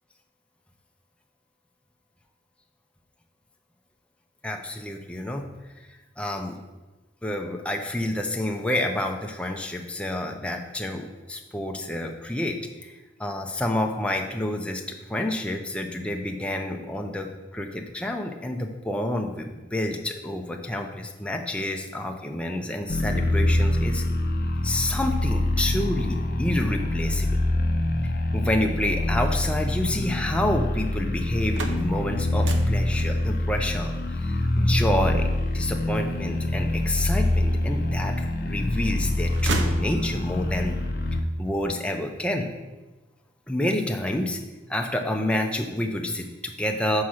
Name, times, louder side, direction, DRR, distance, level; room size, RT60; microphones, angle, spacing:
voice 1, 4.4-5.4 6.2-6.6 7.2-24.0 24.6-27.4 28.3-35.3 35.5-40.8 41.1-42.5 43.5-44.4 44.7-47.0, left 1 dB, 5° left, 2 dB, 0.5 m, -29 dB
sound 1, 22.9-41.2, left 1 dB, 50° left, 0.6 m, -25 dB
sound 2, 31.3-37.2 37.8-38.6 38.9-40.5, right 3 dB, 75° right, 0.7 m, -36 dB
5.8 x 4.7 x 6.2 m, 1.2 s
head